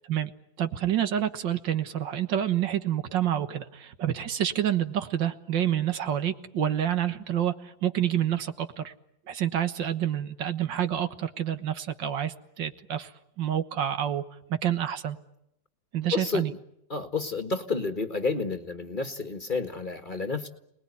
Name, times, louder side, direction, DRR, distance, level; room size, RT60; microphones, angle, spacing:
voice 1, 0.6-8.9 9.3-13.1 13.4-14.2 14.5-15.2 15.9-16.5, right 10 dB, 80° right, 9 dB, 2.0 m, -28 dB
voice 2, 16.1-16.6 16.9-20.5, left 4 dB, 30° left, 7 dB, 1.6 m, -30 dB
29.0 x 20.0 x 9.8 m, 0.81 s
omnidirectional pair, 2.0 m